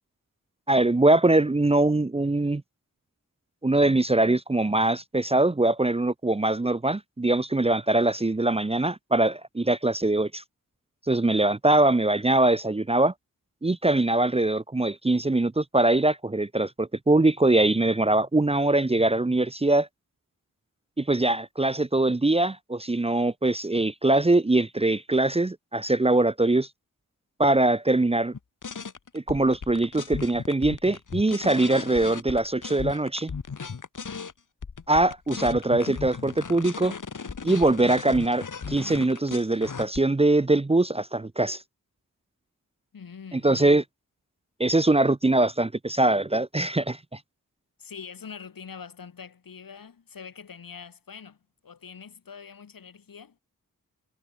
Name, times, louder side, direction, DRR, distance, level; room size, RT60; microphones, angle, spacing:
voice 1, 0.7-2.6 3.6-10.4 11.1-13.1 13.6-19.9 21.0-26.7 27.4-28.3 29.1-33.3 34.9-36.9 37.4-41.6 43.3-43.8 44.6-47.2, right 2 dB, 15° right, 0.8 m, -22 dB
sound 1, 28.3-34.3 34.6-40.0, left 5 dB, 65° left, 4.5 m, -36 dB
voice 2, 42.9-43.7 47.8-51.4 51.6-53.4, left 6 dB, 80° left, 5.5 m, -44 dB
wide cardioid pair, 85°, 34 cm